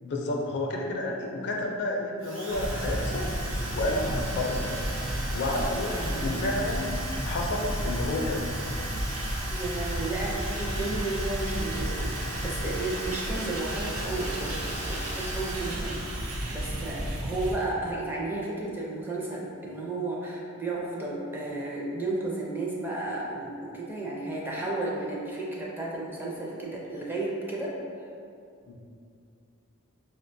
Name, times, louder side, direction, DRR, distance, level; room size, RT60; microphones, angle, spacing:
voice 1, 0.0-3.4 3.7-4.8 5.3-8.5 28.7-28.8, left 2 dB, 55° left, 0 dB, 0.4 m, -30 dB
Drill, 2.2-17.4, right 1 dB, 60° right, 0.8 m, -38 dB
sound 1, 2.5-17.6, equal, 90° right, 0.5 m, -33 dB
voice 2, 6.0-6.3 9.5-27.8, right 2 dB, 10° right, -4 dB, 0.4 m, -33 dB
4.9 x 2.2 x 2.5 m, 2.4 s
head